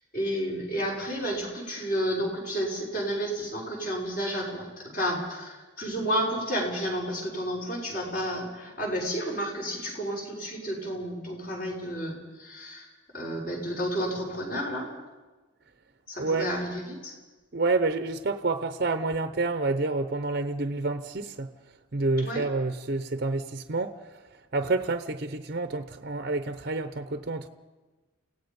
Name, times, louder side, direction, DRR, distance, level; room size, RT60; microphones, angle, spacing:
voice 1, 0.1-14.9 16.1-17.1 22.2-22.4, equal, 45° left, -2 dB, 5.7 m, -31 dB
voice 2, 17.5-21.5 21.9-24.0 24.5-27.5, right 3 dB, 50° right, 9 dB, 0.8 m, -28 dB
29.5 x 17.0 x 5.4 m, 1.3 s
head